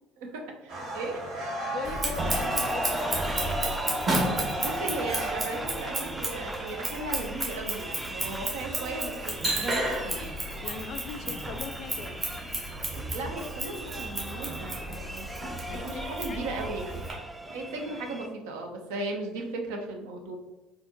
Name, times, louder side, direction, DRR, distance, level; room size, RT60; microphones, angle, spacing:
voice 1, 0.2-1.3 4.6-10.2 13.1-15.3 15.8-17.0 17.5-20.4, right 2 dB, 70° right, 2 dB, 0.6 m, -36 dB
sound 1, 0.7-16.0, right 1 dB, 55° right, 1.1 m, -41 dB
voice 2, 1.7-3.8 10.6-12.3 15.7-16.5, left 6 dB, 55° left, 9 dB, 0.4 m, -40 dB
Scissors, 1.8-17.1, right 1 dB, 35° right, 1.3 m, -33 dB
sound 2, 2.2-18.3, right 1 dB, 10° right, 0.4 m, -37 dB
4.2 x 2.4 x 2.6 m, 1.1 s
hypercardioid pair, 60°, 0 cm